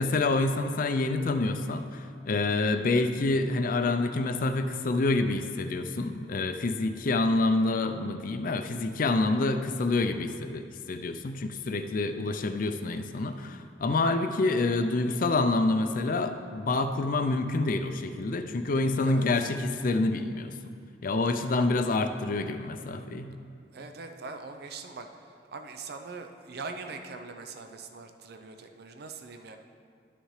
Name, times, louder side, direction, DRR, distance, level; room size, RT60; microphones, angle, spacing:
voice 1, 0.0-20.8 21.0-23.3, left 2 dB, 50° left, 8 dB, 0.5 m, -27 dB
voice 2, 23.7-25.1 25.5-29.6, right 4 dB, 65° right, 6 dB, 0.6 m, -42 dB
12.0 x 6.5 x 3.2 m, 2.3 s
head